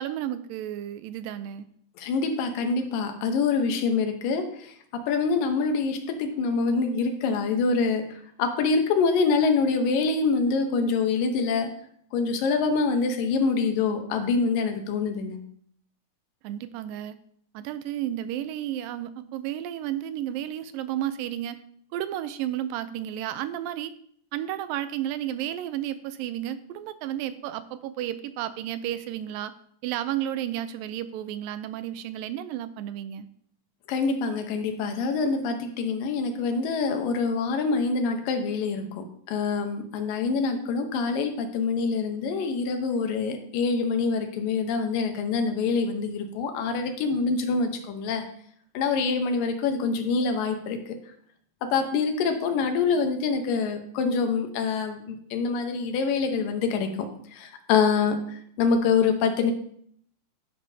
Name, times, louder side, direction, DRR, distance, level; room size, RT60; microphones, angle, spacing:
voice 1, 0.0-1.7 16.4-17.2 17.5-21.6 21.9-23.9 24.3-29.5 29.8-33.3, right 11 dB, 80° right, 12 dB, 2.2 m, -32 dB
voice 2, 2.0-4.7 5.1-8.0 8.4-11.7 12.1-15.4 33.9-48.3 48.7-50.8 51.6-56.9 57.3-59.5, left 4 dB, 75° left, 6 dB, 2.6 m, -25 dB
10.5 x 10.0 x 2.7 m, 0.63 s
omnidirectional pair, 4.1 m